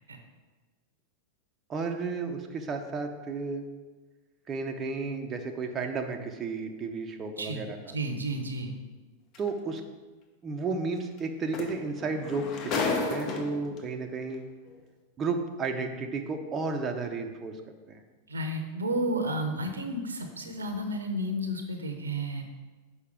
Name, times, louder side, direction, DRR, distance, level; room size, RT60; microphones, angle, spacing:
voice 1, 1.7-3.6 4.5-7.9 9.4-9.8 10.4-14.4 15.2-18.0, right 4 dB, 25° right, 4 dB, 0.7 m, -33 dB
voice 2, 7.9-8.7 18.3-22.4, right 1 dB, 75° right, 5 dB, 0.9 m, -32 dB
sound 1, 9.3-9.5 11.2-11.3 11.5-13.8 14.7-14.8, left 4 dB, 40° left, 1.0 m, -32 dB
6.6 x 5.0 x 5.0 m, 1.3 s
figure-of-eight pair, 90°, 0 cm